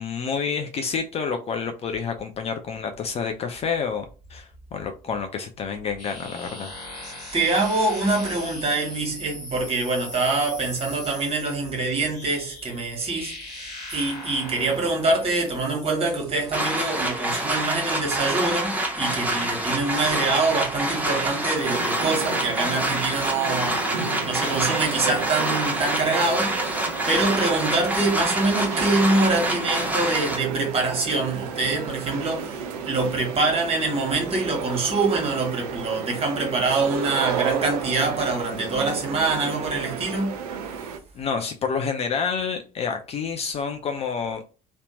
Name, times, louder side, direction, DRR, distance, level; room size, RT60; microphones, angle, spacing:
voice 1, 0.0-6.7 41.1-44.4, left 6 dB, 30° left, 0.4 m, -28 dB
sound 1, 6.0-17.6, left 2 dB, 80° left, 0.9 m, -40 dB
voice 2, 7.3-23.8 24.2-40.3, right 3 dB, 30° right, 1.1 m, -25 dB
sound 2, 16.5-30.4, right 1 dB, 10° right, 0.7 m, -26 dB
sound 3, 21.5-41.0, right 6 dB, 65° right, 0.5 m, -33 dB
2.7 x 2.1 x 2.8 m
figure-of-eight pair, 55°, 21 cm